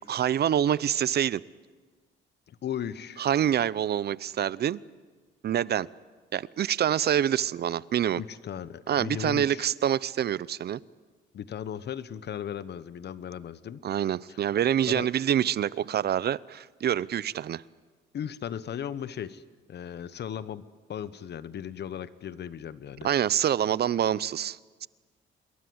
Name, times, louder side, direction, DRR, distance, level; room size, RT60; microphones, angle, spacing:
voice 1, 0.1-1.4 3.2-4.8 5.4-5.9 6.3-8.2 8.9-10.8 13.8-17.6 23.0-24.9, right 10 dB, 55° right, 20 dB, 0.7 m, -26 dB
voice 2, 2.5-3.3 8.2-9.7 11.3-13.8 14.3-14.4 14.9-15.1 18.1-19.4 19.7-20.6 20.9-23.1, left 9 dB, 60° left, 15 dB, 1.1 m, -36 dB
27.5 x 22.0 x 8.0 m, 1.5 s
cardioid pair, 90°, 20 cm